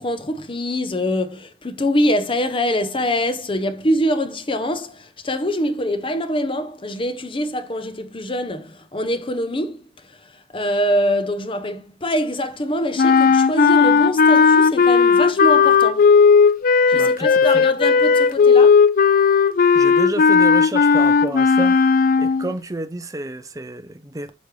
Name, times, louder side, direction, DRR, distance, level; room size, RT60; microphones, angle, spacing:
voice 1, 0.0-16.1 16.9-18.7, equal, 30° left, 0.8 m, -24 dB
sound 1, 13.0-22.5, left 5 dB, 50° left, 0.4 m, -15 dB
voice 2, 16.9-17.7 19.7-21.8 22.2-24.3, right 2 dB, 20° right, 0.6 m, -30 dB
8.2 x 5.3 x 3.2 m
head